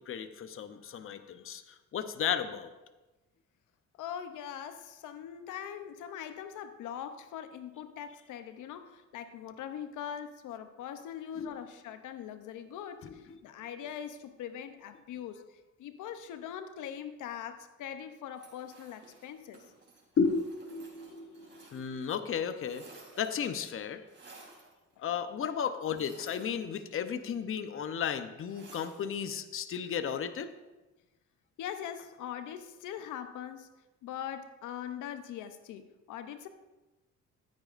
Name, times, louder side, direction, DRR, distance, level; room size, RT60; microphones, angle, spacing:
voice 1, 0.1-2.7 11.3-11.6 13.3-13.4 20.2-20.4 20.7-22.9 23.2-24.0 25.0-30.5, left 7 dB, 45° left, 10 dB, 0.7 m, -34 dB
voice 2, 3.9-19.6 25.0-25.1 31.6-33.7 34.0-36.5, left 9 dB, 80° left, 10 dB, 0.7 m, -42 dB
sound 1, 18.3-22.1 22.4-23.5 24.1-24.7 25.9-27.1 28.5-29.3, right 3 dB, 40° right, 3.7 m, -55 dB
14.5 x 9.1 x 2.5 m, 1.1 s
cardioid pair, 90°, 30 cm